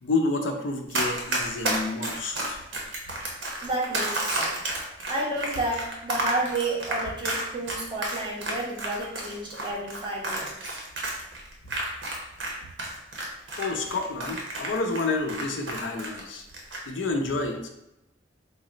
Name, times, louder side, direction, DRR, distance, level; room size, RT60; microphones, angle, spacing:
voice 1, 0.0-2.6 13.6-16.5 16.9-17.7, left 3 dB, 85° left, 4 dB, 0.5 m, -29 dB
Run, 0.9-12.5 12.8-16.2 16.5-16.8, right 2 dB, 85° right, 0.9 m, -30 dB
voice 2, 3.6-4.7 5.0-10.8, right 2 dB, 25° right, -4 dB, 0.9 m, -31 dB
3.9 x 2.0 x 3.8 m, 0.90 s
head